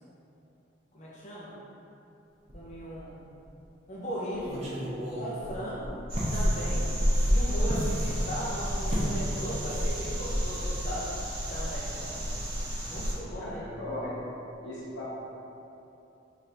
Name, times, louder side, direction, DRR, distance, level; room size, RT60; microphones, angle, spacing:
voice 1, 0.9-1.6 2.5-3.3 3.9-4.6 5.2-6.0 6.3-6.8 7.3-11.1 11.5-11.9 12.8-13.6, equal, 40° left, -7 dB, 0.6 m, -37 dB
sound 1, 2.5-3.1 3.4-3.5 4.3-6.4 7.7-7.9 8.9-9.2 9.5-9.8 10.1-10.3, equal, 35° right, 0.6 m, -35 dB
voice 2, 4.4-4.9 5.6-5.8 12.0-12.2 13.4-14.2 14.6-15.1, left 1 dB, 90° left, -7 dB, 1.0 m, -39 dB
sound 2, 6.1-13.1, equal, 50° right, 1.1 m, -29 dB
4.1 x 2.6 x 3.2 m, 2.9 s
head